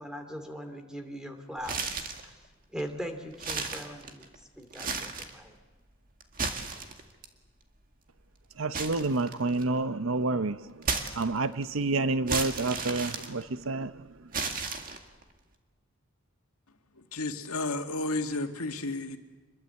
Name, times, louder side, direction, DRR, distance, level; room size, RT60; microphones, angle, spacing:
voice 1, 0.0-1.9 2.2-2.3 2.7-4.3 4.6-5.5, equal, 5° right, 2.5 m, -40 dB
sound 1, 1.6-2.3 2.8-2.9 3.3-4.4 4.7-5.4 6.2-7.3 8.7-9.8 10.8-11.6 12.3-13.8 14.3-15.2, right 4 dB, 40° right, 2.0 m, -33 dB
voice 2, 8.6-10.9 11.2-14.1, right 3 dB, 65° right, 0.7 m, -29 dB
voice 3, 17.0-19.2, left 2 dB, 90° left, 2.1 m, -32 dB
26.5 x 22.0 x 8.3 m
head